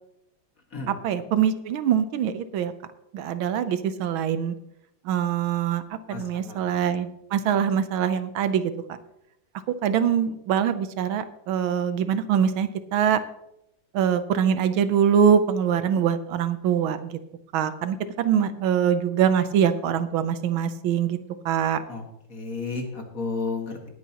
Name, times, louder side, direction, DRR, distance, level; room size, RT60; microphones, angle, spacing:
voice 1, 0.9-2.7 3.1-4.5 5.0-5.8 6.1-8.7 9.7-13.2 13.9-17.2 17.5-21.2 21.4-21.8, right 8 dB, 85° right, 12 dB, 1.6 m, -23 dB
voice 2, 6.1-6.6 21.9-22.0 22.3-23.9, left 4 dB, 45° left, 2 dB, 2.0 m, -32 dB
18.5 x 9.3 x 2.9 m, 0.82 s
omnidirectional pair, 2.2 m